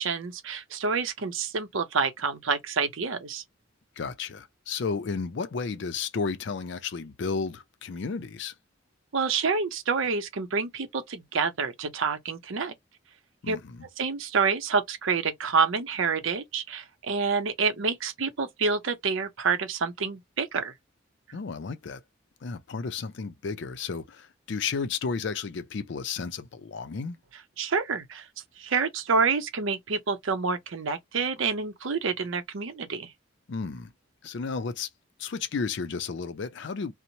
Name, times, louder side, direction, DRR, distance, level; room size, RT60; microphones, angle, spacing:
voice 1, 0.0-3.4 9.1-12.7 13.5-13.6 14.0-20.7 27.6-28.3 28.6-33.1, right 5 dB, 75° right, 0.6 m, -28 dB
voice 2, 4.0-8.5 13.4-13.8 21.3-22.0 22.4-27.2 33.5-33.9 34.2-34.9 35.2-36.9, left 5 dB, 60° left, 0.4 m, -33 dB
2.9 x 2.0 x 2.7 m
head